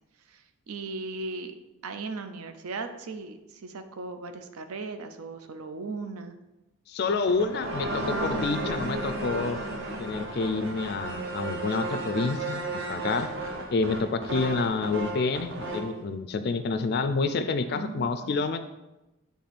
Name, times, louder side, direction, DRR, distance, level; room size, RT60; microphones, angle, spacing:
voice 1, 0.3-1.6 1.8-6.3 17.7-18.4, right 3 dB, 85° right, 8 dB, 0.6 m, -37 dB
voice 2, 6.9-9.6 10.0-13.3 13.7-18.6, left 4 dB, 45° left, 10 dB, 0.3 m, -28 dB
sound 1, 7.1-16.0, right 2 dB, 55° right, 0.8 m, -33 dB
7.7 x 3.5 x 4.1 m, 1.0 s
head